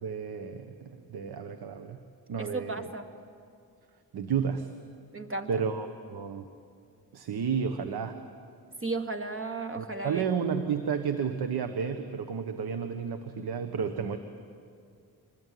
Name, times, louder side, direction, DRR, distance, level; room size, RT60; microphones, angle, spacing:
voice 1, 0.0-2.0 2.3-2.9 4.1-4.7 5.5-6.5 7.1-8.2 9.8-14.2, right 6 dB, 75° right, 8 dB, 1.4 m, -32 dB
voice 2, 2.4-3.1 5.1-5.6 8.8-10.2, right 2 dB, 35° right, 6 dB, 2.4 m, -34 dB
27.0 x 22.0 x 9.4 m, 2.3 s
supercardioid pair, 55°, 39 cm